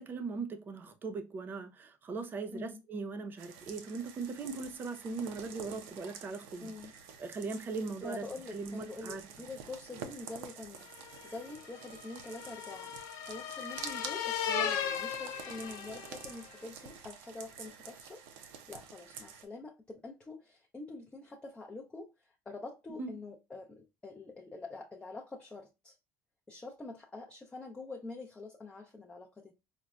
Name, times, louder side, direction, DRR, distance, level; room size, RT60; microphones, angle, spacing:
voice 1, 0.0-6.7 7.2-8.2 8.5-9.2 23.0-23.1, right 4 dB, 35° right, 0.6 m, -39 dB
sound 1, 3.4-19.5, right 7 dB, 90° right, 0.5 m, -49 dB
voice 2, 6.6-6.9 8.0-10.9 11.2-12.9 13.2-26.0 26.5-29.5, left 2 dB, 15° left, 0.5 m, -46 dB
sound 2, 11.0-16.5, left 8 dB, 65° left, 0.5 m, -37 dB
4.0 x 2.1 x 2.3 m
supercardioid pair, 105°, 6 cm